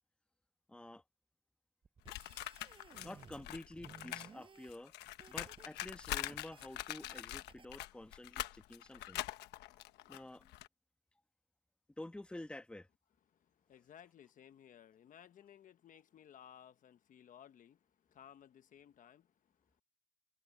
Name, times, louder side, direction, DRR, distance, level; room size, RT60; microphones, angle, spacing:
voice 1, 0.7-1.0 3.0-4.9 5.3-9.5 10.1-10.5 12.0-12.9, left 1 dB, 5° left, 1.3 m, -50 dB
sound 1, 1.8-3.5 3.7-5.7 6.0-6.7 7.1-7.2 7.5-7.7, right 5 dB, 30° right, 6.3 m, -58 dB
sound 2, 2.1-4.3 4.6-10.7, left 15 dB, 80° left, 1.2 m, -44 dB
voice 2, 13.3-19.8, left 9 dB, 50° left, 1.2 m, -59 dB
cardioid pair, 110°, 17 cm